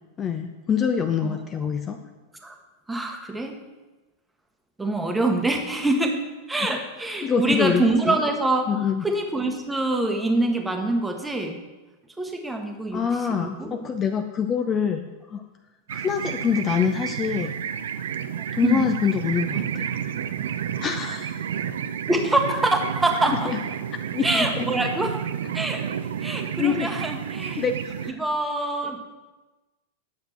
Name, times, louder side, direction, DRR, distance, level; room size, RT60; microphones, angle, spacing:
voice 1, 0.2-2.0 7.2-8.2 8.7-9.1 12.9-15.4 15.9-17.5 18.5-19.9 20.8-21.3 23.4-23.6 24.1-24.7 26.2-26.9 27.6-28.2, left 6 dB, 25° left, 6 dB, 0.5 m, -25 dB
voice 2, 2.9-3.5 4.8-6.2 6.5-11.6 12.2-13.8 18.6-18.9 22.1-23.5 24.2-25.2 25.5-25.9 26.2-27.7 28.1-29.0, right 2 dB, 5° right, 4 dB, 1.1 m, -25 dB
sound 1, 15.9-28.1, right 8 dB, 60° right, 0.4 m, -31 dB
9.5 x 6.6 x 4.4 m, 1.2 s
figure-of-eight pair, 90°, 0 cm